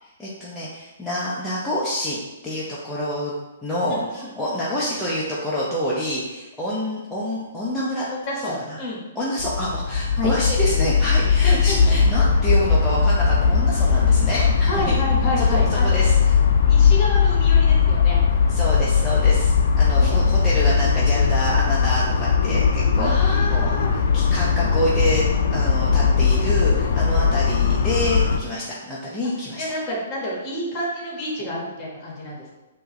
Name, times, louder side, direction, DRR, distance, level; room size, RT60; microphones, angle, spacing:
voice 1, 0.0-2.2 2.4-3.3 3.6-8.1 8.7-8.8 9.1-15.0 15.4-16.4 18.5-25.2 25.5-29.6, equal, 5° left, -9 dB, 0.7 m, -27 dB
voice 2, 3.9-4.6 8.1-9.0 10.2-10.3 11.2-12.0 14.6-16.0 16.6-18.2 20.0-20.1 23.0-23.9 29.4-32.5, equal, 30° left, -3 dB, 1.4 m, -29 dB
sound 1, 9.4-28.4, left 6 dB, 60° left, 0.4 m, -19 dB
4.5 x 2.7 x 3.1 m, 1.1 s
hypercardioid pair, 135°, 0 cm